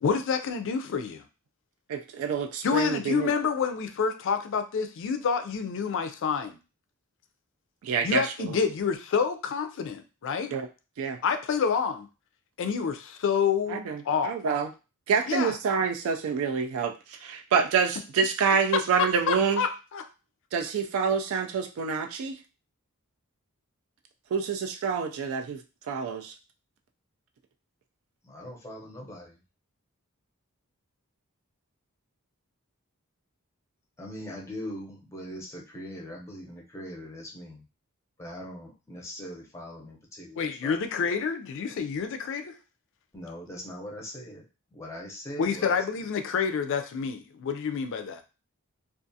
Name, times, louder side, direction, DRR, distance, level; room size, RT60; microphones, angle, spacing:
voice 1, 0.0-1.2 2.6-6.6 8.0-10.5 11.2-12.1 12.6-13.8 14.1-14.4 15.3-15.5 19.3-20.0 40.4-42.6 45.4-48.2, left 6 dB, 60° left, 8 dB, 0.4 m, -28 dB
voice 2, 1.9-3.3 7.8-8.6 10.5-10.7 11.0-11.2 13.7-14.7 15.1-19.6 20.5-22.4 24.3-25.6 25.9-26.3, right 6 dB, 65° right, 4 dB, 0.3 m, -27 dB
voice 3, 28.2-29.4 34.0-37.7 38.2-40.8 43.1-44.4 44.7-45.8, equal, 15° left, -1 dB, 0.6 m, -41 dB
2.4 x 2.4 x 2.6 m, 0.31 s
head